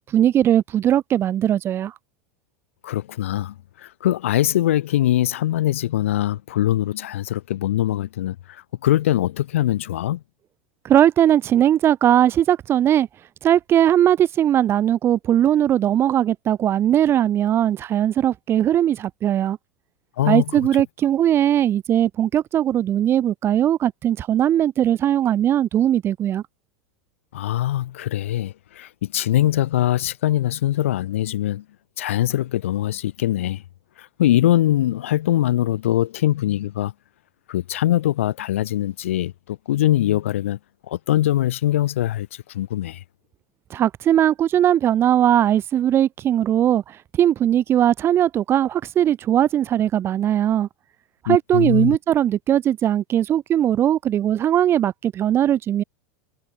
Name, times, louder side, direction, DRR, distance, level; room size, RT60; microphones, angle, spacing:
voice 1, 0.1-1.9 10.8-13.1 13.4-19.6 20.3-26.4 43.7-50.7 51.2-55.8, right 11 dB, 35° right, 1.0 m, -19 dB
voice 2, 2.8-8.4 8.8-10.2 20.2-20.4 27.3-31.6 32.0-33.6 34.0-36.9 37.5-40.6 40.9-42.3 42.5-43.0 51.3-52.0, left 13 dB, 70° left, 2.6 m, -22 dB
figure-of-eight pair, 85°, 7 cm